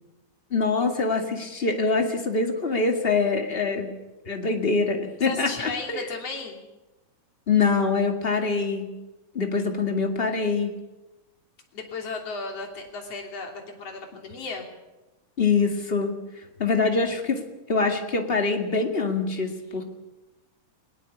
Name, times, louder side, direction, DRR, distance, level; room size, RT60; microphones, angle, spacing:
voice 1, 0.5-3.9 4.3-6.1 7.5-8.9 9.3-10.7 15.4-16.1 16.6-17.4 17.7-19.8, left 4 dB, 25° left, 4 dB, 1.6 m, -24 dB
voice 2, 5.2-6.6 11.7-14.7, left 4 dB, 50° left, 2 dB, 4.0 m, -35 dB
20.0 x 19.0 x 8.4 m, 1.1 s
omnidirectional pair, 3.8 m